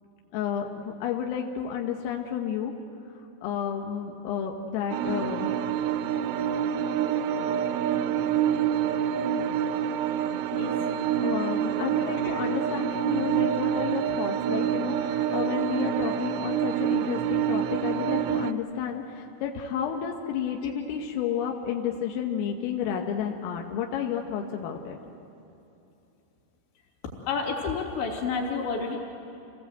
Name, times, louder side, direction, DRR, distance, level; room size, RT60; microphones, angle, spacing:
voice 1, 0.3-2.7 3.4-5.7 10.9-25.0, left 8 dB, 90° left, 1 dB, 3.9 m, -31 dB
sound 1, 4.9-18.5, right 9 dB, 80° right, 2.5 m, -27 dB
voice 2, 27.3-29.0, left 4 dB, 65° left, 0 dB, 4.9 m, -30 dB
28.0 x 19.0 x 8.1 m, 2.8 s
omnidirectional pair, 5.8 m